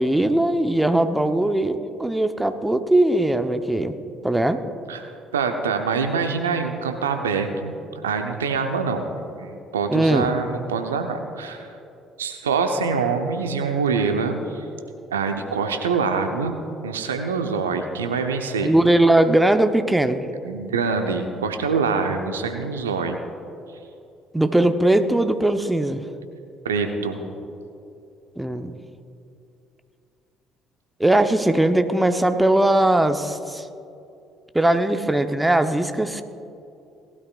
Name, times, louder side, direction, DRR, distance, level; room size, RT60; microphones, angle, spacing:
voice 1, 0.0-4.0 4.2-4.6 9.9-10.3 18.6-20.2 24.3-26.0 28.4-28.7 31.0-33.7 34.5-36.2, right 1 dB, 10° right, 8 dB, 0.9 m, -20 dB
voice 2, 4.9-7.7 8.0-11.7 12.2-14.6 15.1-18.7 20.4-23.2 26.6-27.2, right 5 dB, 85° right, 6 dB, 0.7 m, -25 dB
18.5 x 12.0 x 2.5 m, 2.6 s
hypercardioid pair, 50°, 0 cm